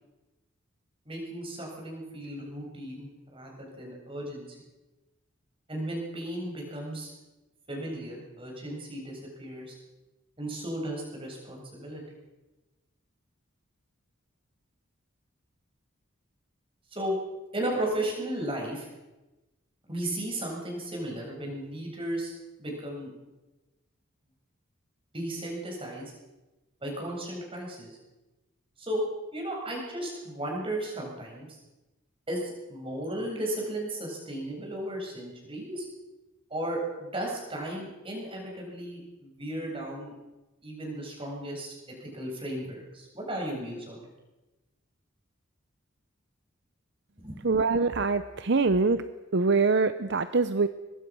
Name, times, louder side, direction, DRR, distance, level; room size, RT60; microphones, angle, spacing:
voice 1, 1.1-4.6 5.7-7.1 7.7-9.8 10.4-12.0 16.9-17.1 17.5-18.9 19.9-22.3 22.6-23.1 25.1-26.1 26.8-28.0 28.8-29.0 29.3-31.6 32.3-35.9 36.5-40.1 40.6-44.1 47.2-47.4, right 1 dB, 25° right, -1 dB, 7.5 m, -35 dB
voice 2, 47.4-49.0 49.3-50.7, right 4 dB, 55° right, 11 dB, 0.8 m, -24 dB
24.0 x 21.0 x 6.3 m, 1.1 s
head